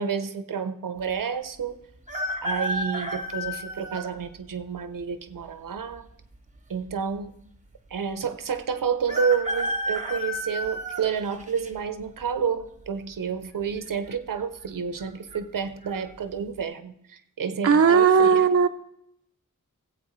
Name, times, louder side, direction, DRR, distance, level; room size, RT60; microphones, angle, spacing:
voice 1, 0.0-1.8 2.4-6.1 6.7-7.3 7.9-18.5, right 6 dB, 80° right, 10 dB, 0.7 m, -30 dB
sound 1, 2.1-4.1 4.8-4.9 6.0-6.6 6.9-7.0 7.2-7.3 9.1-11.7 12.2-12.6 13.8-14.1 14.4-14.5 15.0-15.4 15.8-16.0, equal, 25° right, 1.1 m, -31 dB
voice 2, 17.6-18.7, right 6 dB, 50° right, 6 dB, 0.6 m, -17 dB
15.5 x 8.1 x 3.1 m, 0.75 s
wide cardioid pair, 100°, 32 cm